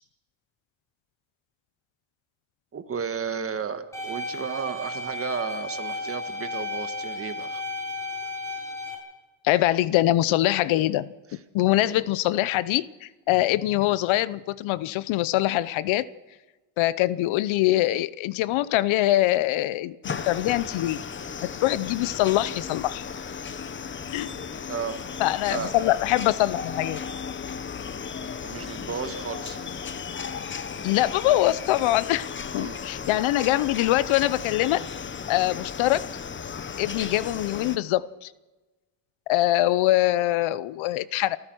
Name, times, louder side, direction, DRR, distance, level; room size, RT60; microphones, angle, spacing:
voice 1, 2.7-7.6 11.8-12.0 24.7-25.1 25.5-25.7 28.2-29.7 32.6-32.8, right 6 dB, 30° right, 9 dB, 1.6 m, -33 dB
sound 1, 3.9-9.0, left 1 dB, 5° left, 5.8 m, -34 dB
voice 2, 9.4-11.1 11.5-16.1 16.8-21.0 21.4-23.1 24.1-24.3 25.2-27.0 30.8-32.3 32.5-34.8 35.3-36.1 36.8-38.3 39.3-41.4, left 15 dB, 75° left, 18 dB, 0.9 m, -23 dB
sound 2, 20.0-37.8, left 6 dB, 25° left, 0.9 m, -35 dB
28.0 x 15.0 x 6.3 m, 1.2 s
cardioid pair, 140°, 47 cm